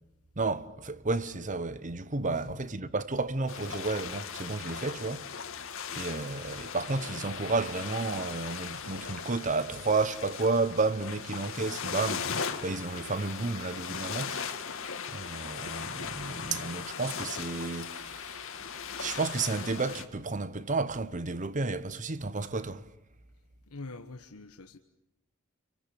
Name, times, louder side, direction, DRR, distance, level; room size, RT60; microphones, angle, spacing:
voice 1, 0.4-5.3 5.9-14.4 15.1-18.4 19.0-22.9, right 3 dB, 35° right, 1.1 m, -32 dB
voice 2, 2.2-2.6 23.7-24.8, left 3 dB, 90° left, 1.3 m, -44 dB
sound 1, 3.5-20.0, left 6 dB, 65° left, 2.3 m, -38 dB
29.0 x 23.5 x 8.5 m
head